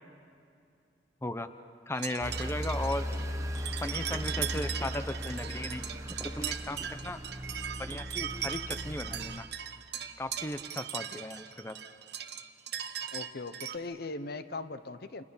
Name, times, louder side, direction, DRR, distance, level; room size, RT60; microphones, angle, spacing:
voice 1, 1.9-3.1 3.8-5.8 6.2-7.2 7.8-9.4 10.2-11.8, left 1 dB, 15° left, 10 dB, 0.7 m, -36 dB
sound 1, 1.9-13.8, right 10 dB, 60° right, 0.9 m, -39 dB
sound 2, 2.2-9.4, equal, 15° right, 1.2 m, -37 dB
voice 2, 13.1-15.2, left 3 dB, 60° left, 12 dB, 0.8 m, -39 dB
29.5 x 27.5 x 5.6 m, 2.4 s
head